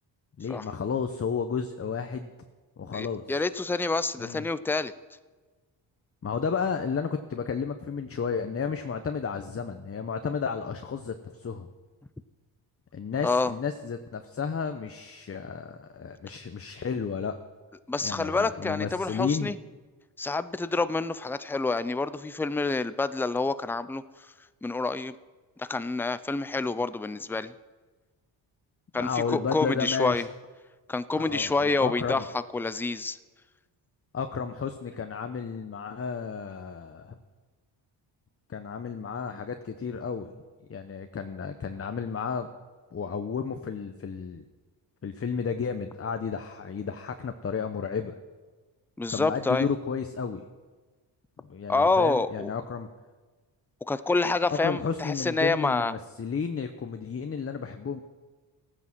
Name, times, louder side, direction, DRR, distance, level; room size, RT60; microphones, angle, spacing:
voice 1, 0.4-2.3 2.8-3.2 4.2-4.5 6.2-11.7 12.9-17.3 18.0-19.5 28.9-30.2 31.1-32.2 34.1-37.1 38.5-40.3 40.7-42.5 42.9-44.4 45.0-48.2 49.1-50.4 51.4-52.9 54.5-58.0, left 6 dB, 30° left, 7 dB, 0.9 m, -32 dB
voice 2, 2.9-4.9 13.2-13.5 17.9-19.6 20.2-24.0 24.6-25.2 25.6-27.5 28.9-30.3 30.9-33.2 49.0-49.7 51.7-52.5 53.9-55.9, left 3 dB, 5° left, 14 dB, 0.5 m, -27 dB
15.0 x 9.5 x 6.2 m, 1.3 s
cardioid pair, 80°, 47 cm